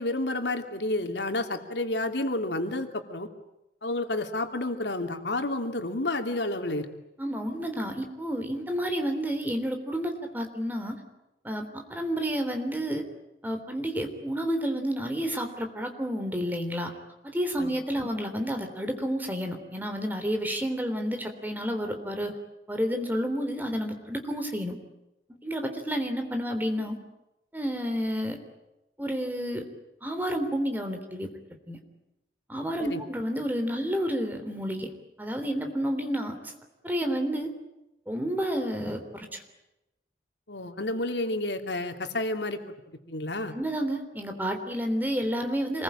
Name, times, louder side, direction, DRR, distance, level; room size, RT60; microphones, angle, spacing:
voice 1, 0.0-3.3 3.8-6.9 17.6-17.7 32.8-33.0 40.5-42.6 43.1-43.6, left 2 dB, 80° left, 5 dB, 2.8 m, -30 dB
voice 2, 7.2-11.0 11.4-13.0 13.4-16.9 17.2-22.3 22.7-24.8 25.4-27.0 27.5-28.4 29.0-29.6 30.0-31.3 31.7-31.8 32.5-34.9 35.2-36.5 36.8-37.5 38.1-39.4 43.5-45.8, equal, 10° right, 5 dB, 3.5 m, -30 dB
27.5 x 21.5 x 8.9 m, 0.93 s
head